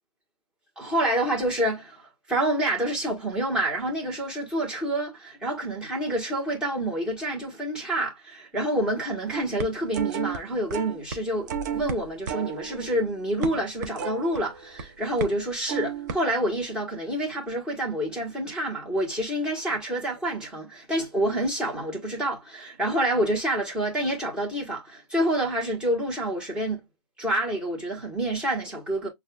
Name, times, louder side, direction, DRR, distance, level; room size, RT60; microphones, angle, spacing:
voice 1, 0.8-2.0 2.3-26.8 27.2-29.1, right 1 dB, 5° right, 1.3 m, -28 dB
sound 1, 9.3-10.4 10.7-11.2 11.5-14.8 15.2-15.4 15.7-16.1, right 6 dB, 30° right, 0.6 m, -32 dB
6.4 x 2.4 x 2.3 m
hypercardioid pair, 165°, 20 cm